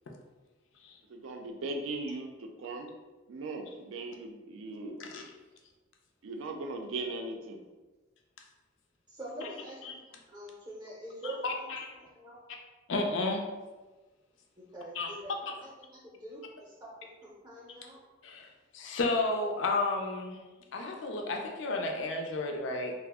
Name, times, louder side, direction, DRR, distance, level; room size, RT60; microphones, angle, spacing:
voice 1, 1.1-2.9 3.3-5.0 6.2-7.6, right 2 dB, 85° right, 3 dB, 0.4 m, -38 dB
voice 2, 9.1-10.0 10.3-11.7 12.0-12.4 14.7-16.9 17.2-18.0, right 1 dB, 20° right, -6 dB, 0.6 m, -44 dB
voice 3, 11.2-11.9 12.9-13.5 15.0-15.1 18.2-18.5 18.7-20.4 20.7-22.9, left 2 dB, 70° left, 2 dB, 0.4 m, -32 dB
2.4 x 2.0 x 3.4 m, 1.2 s
head